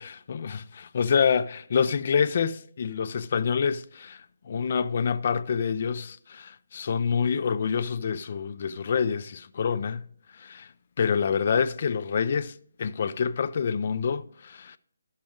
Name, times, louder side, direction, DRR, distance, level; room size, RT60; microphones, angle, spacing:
voice 1, 0.0-10.1 10.4-10.7 11.0-12.5 12.8-14.8, left 6 dB, 50° left, 0.4 m, -27 dB
12.5 x 6.4 x 3.6 m
figure-of-eight pair, 155°, 0 cm